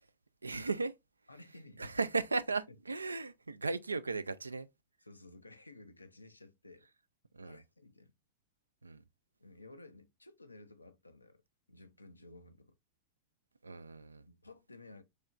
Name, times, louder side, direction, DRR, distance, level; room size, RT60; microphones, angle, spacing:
voice 1, 0.4-0.9 1.8-4.7 7.3-7.6 8.8-9.0 13.6-14.2, right 3 dB, 80° right, 0.3 m, -36 dB
voice 2, 1.3-2.0 2.7-2.8 5.0-6.9 7.4-8.1 9.4-11.4 11.7-12.7 14.3-15.0, left 2 dB, 85° left, 0.5 m, -55 dB
6.3 x 2.9 x 2.4 m
figure-of-eight pair, 90°, 0 cm